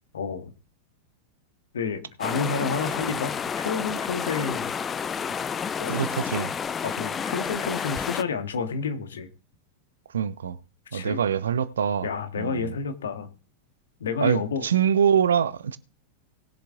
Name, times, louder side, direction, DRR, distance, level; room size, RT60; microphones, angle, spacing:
voice 1, 0.1-0.5 1.7-4.7 5.8-6.0 6.8-9.3 10.9-11.2 12.0-13.3 14.0-14.6, left 5 dB, 65° left, 1.6 m, -30 dB
sound 1, 2.2-8.2, left 7 dB, 20° left, 0.5 m, -30 dB
voice 2, 5.9-6.5 10.1-10.6 10.9-12.1 12.4-12.7 14.2-15.8, right 8 dB, 65° right, 0.7 m, -24 dB
19.5 x 7.1 x 3.6 m
figure-of-eight pair, 90°, 0 cm